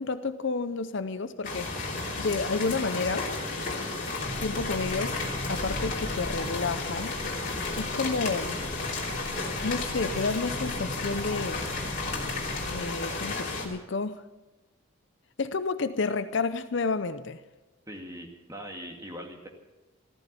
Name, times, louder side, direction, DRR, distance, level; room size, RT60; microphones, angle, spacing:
voice 1, 0.0-1.9 2.2-3.3 4.4-5.2 5.5-7.1 7.8-8.6 9.6-11.7 12.7-14.2 15.4-17.4, left 4 dB, 55° left, 0.6 m, -30 dB
sound 1, 1.4-13.7, left 3 dB, 40° left, 3.0 m, -33 dB
sound 2, 1.5-6.8, right 1 dB, 45° right, 4.4 m, -49 dB
voice 2, 3.9-4.2 17.9-19.5, equal, 15° right, 2.1 m, -42 dB
sound 3, 4.2-12.8, equal, 65° right, 2.2 m, -40 dB
14.5 x 14.0 x 6.8 m
head